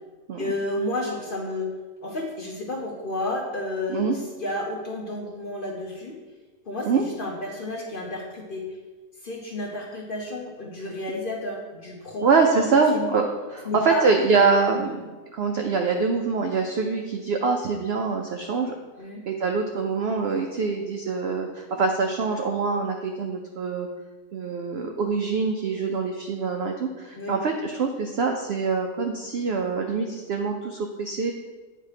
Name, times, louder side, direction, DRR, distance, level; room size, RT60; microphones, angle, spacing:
voice 1, 0.4-1.7 2.0-6.2 6.7-8.7 9.2-12.3 12.5-12.7 12.9-13.1 13.7-14.1 14.8-14.9 19.0-19.2 25.8-26.0 27.2-27.3, left 2 dB, 50° left, -1 dB, 0.7 m, -31 dB
voice 2, 12.2-18.7 19.3-23.9 24.3-31.3, right 4 dB, 80° right, 4 dB, 0.5 m, -24 dB
8.8 x 2.9 x 4.8 m, 1.3 s
omnidirectional pair, 1.6 m